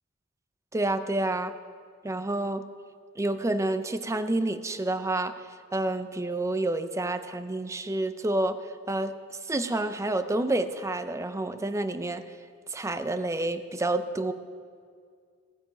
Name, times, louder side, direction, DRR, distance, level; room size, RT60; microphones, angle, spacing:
voice 1, 0.7-1.5 2.0-2.6 3.2-5.3 5.7-8.6 8.9-9.1 9.5-12.2 12.7-14.3, right 2 dB, 15° right, 10 dB, 0.5 m, -28 dB
15.0 x 8.7 x 5.1 m, 2.1 s
head